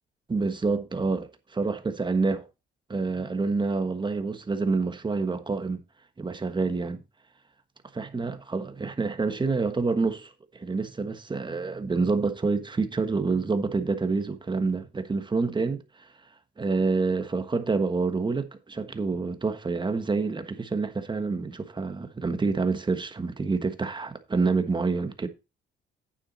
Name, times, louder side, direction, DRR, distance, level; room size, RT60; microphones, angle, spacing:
voice 1, 0.3-2.5 2.9-5.8 6.2-7.0 7.9-16.1 16.6-25.3, right 4 dB, 25° right, 1.4 m, -27 dB
9.1 x 7.1 x 4.2 m
cardioid pair, 90°, 20 cm